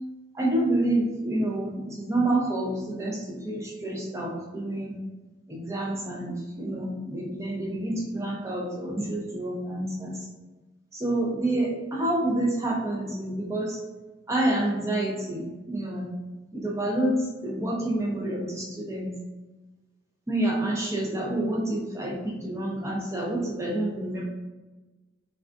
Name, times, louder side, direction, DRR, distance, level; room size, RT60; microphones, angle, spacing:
voice 1, 0.3-5.0 5.5-10.2 10.9-13.8 14.3-16.1 16.5-17.2 17.4-19.2 20.3-24.2, right 1 dB, 15° right, -2 dB, 0.5 m, -28 dB
3.4 x 2.3 x 2.5 m, 1.2 s
head